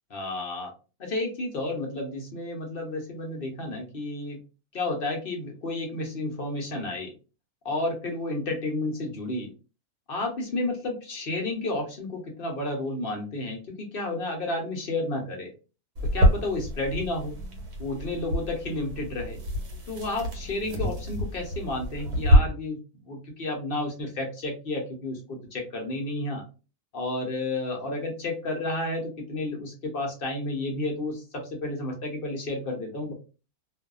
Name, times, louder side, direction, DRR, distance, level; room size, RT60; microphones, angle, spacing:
voice 1, 0.1-0.7 1.0-4.4 4.7-7.1 7.6-9.5 10.1-15.5 16.1-17.4 17.8-19.4 19.9-22.8 23.0-26.4 26.9-33.1, left 2 dB, 50° left, 1 dB, 0.8 m, -31 dB
sound 1, 16.0-22.4, equal, 85° right, 1.4 m, -26 dB
2.6 x 2.4 x 2.3 m, 0.32 s
omnidirectional pair, 1.6 m